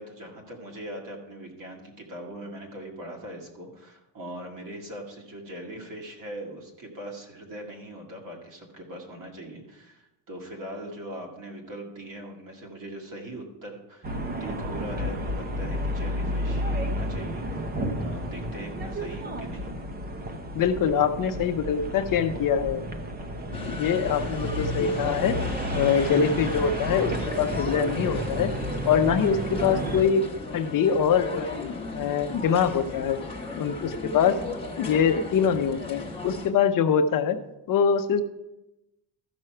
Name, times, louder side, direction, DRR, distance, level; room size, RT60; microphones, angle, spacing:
voice 1, 0.0-19.7, right 1 dB, 45° right, 0 dB, 2.1 m, -41 dB
sound 1, 14.0-30.0, equal, 20° right, 0.7 m, -31 dB
voice 2, 20.5-22.8 23.5-25.4 25.7-28.5 28.8-30.2 30.5-33.2 33.6-34.4 34.8-37.4 37.7-38.2, left 7 dB, 45° left, 8 dB, 0.7 m, -24 dB
sound 2, 23.5-36.5, left 3 dB, 10° left, 1.2 m, -36 dB
13.5 x 6.2 x 4.4 m, 0.95 s
cardioid pair, 160°, 46 cm